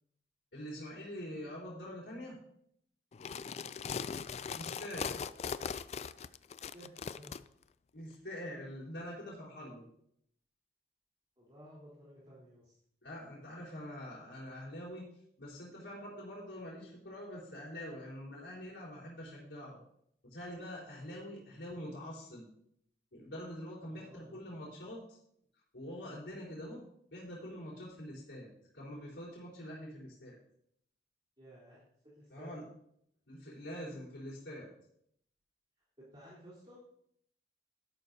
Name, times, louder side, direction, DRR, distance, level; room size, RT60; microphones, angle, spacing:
voice 1, 0.5-2.4 4.5-5.2 7.9-9.8 13.0-15.1 15.4-19.8 20.2-22.5 23.1-25.2 25.7-26.8 27.1-30.3 32.3-32.6 33.3-34.7, equal, 90° left, -6 dB, 4.2 m, -45 dB
sound 1, 3.1-7.4, left 6 dB, 35° left, 0.3 m, -39 dB
voice 2, 3.4-4.0 6.5-7.5 11.4-12.7 23.8-24.4 31.4-32.6 36.0-36.8, equal, 25° right, -7 dB, 3.5 m, -55 dB
13.0 x 11.5 x 2.8 m, 0.70 s
head